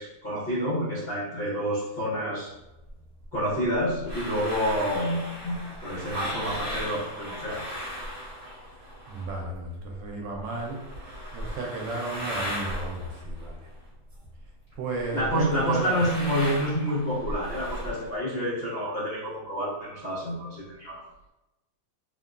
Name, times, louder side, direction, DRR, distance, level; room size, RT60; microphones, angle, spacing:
voice 1, 0.0-2.5 3.3-7.6 15.1-21.0, equal, 70° left, -8 dB, 0.5 m, -28 dB
sound 1, 2.9-9.6 9.8-14.4 14.7-18.2, equal, 35° right, 1.0 m, -37 dB
voice 2, 9.1-10.8 11.3-13.6 14.8-16.0, right 3 dB, 75° right, 0 dB, 1.3 m, -33 dB
3.3 x 2.2 x 2.4 m, 0.96 s
omnidirectional pair, 2.1 m